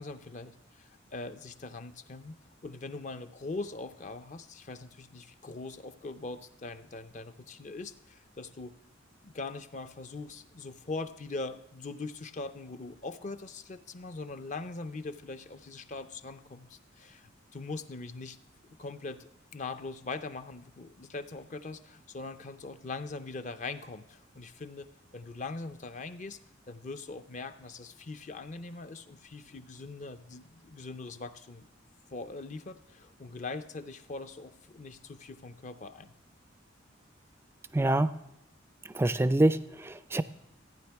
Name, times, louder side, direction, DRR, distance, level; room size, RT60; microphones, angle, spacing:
voice 1, 0.0-2.4 2.6-8.7 9.2-18.4 18.8-24.9 25.1-26.4 26.7-31.7 32.1-36.1, left 3 dB, 40° left, 10 dB, 0.5 m, -41 dB
voice 2, 37.7-38.1 38.9-40.2, right 1 dB, 10° right, 14 dB, 0.4 m, -25 dB
14.5 x 9.4 x 3.5 m, 0.89 s
head